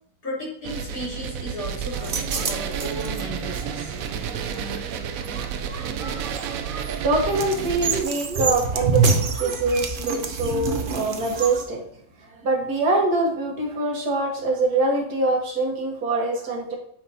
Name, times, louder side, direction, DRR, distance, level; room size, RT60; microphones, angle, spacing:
voice 1, 0.2-3.9, equal, 70° left, -7 dB, 3.9 m, -34 dB
sound 1, 0.6-8.0, right 7 dB, 70° right, 1.0 m, -31 dB
sound 2, 1.9-11.6, right 4 dB, 45° right, 0.8 m, -28 dB
voice 2, 6.7-11.8 12.3-16.8, right 2 dB, 85° right, 0 dB, 1.9 m, -24 dB
8.9 x 6.1 x 2.8 m, 0.63 s
omnidirectional pair, 1.6 m